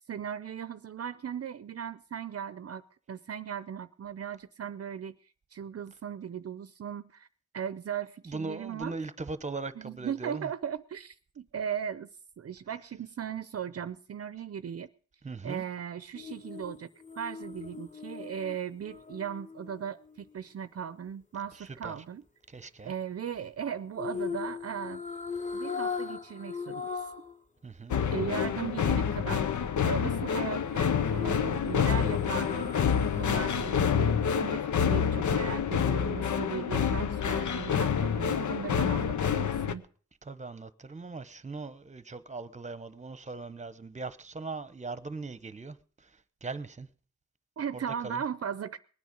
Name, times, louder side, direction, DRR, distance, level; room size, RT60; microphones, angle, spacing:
voice 1, 0.1-7.3 7.5-9.1 9.7-12.1 12.4-14.9 15.4-16.9 17.2-22.2 22.8-25.0 25.5-27.1 28.1-29.5 29.8-32.8 33.2-39.8 47.6-48.8, right 8 dB, 55° right, 0.6 m, -37 dB
voice 2, 8.3-10.5 15.2-15.6 21.8-21.9 22.5-22.9 27.6-28.0 40.3-45.8 46.4-46.9 48.0-48.2, right 3 dB, 25° right, 1.0 m, -39 dB
sound 1, 16.1-20.4 24.0-27.3 27.7-27.8 30.6-33.5 33.9-34.0, left 5 dB, 25° left, 2.7 m, -39 dB
sound 2, 27.9-39.7, left 7 dB, 90° left, 1.0 m, -28 dB
20.5 x 9.5 x 5.2 m
wide cardioid pair, 105°, 29 cm